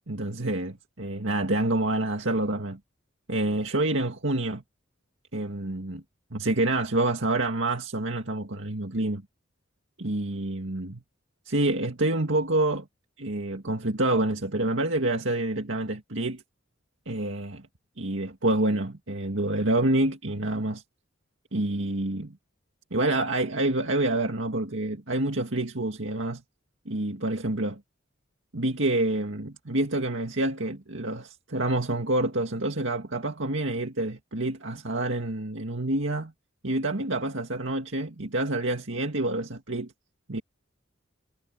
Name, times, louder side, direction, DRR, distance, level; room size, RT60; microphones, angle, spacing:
voice 1, 0.1-2.8 3.3-4.6 5.3-6.0 6.3-9.2 10.0-11.0 11.5-12.9 13.2-16.4 17.1-17.6 18.0-20.8 21.5-22.4 22.9-26.4 26.9-27.8 28.5-36.3 36.6-39.9 40.3-40.4, right 2 dB, 65° right, 2.2 m, -27 dB
head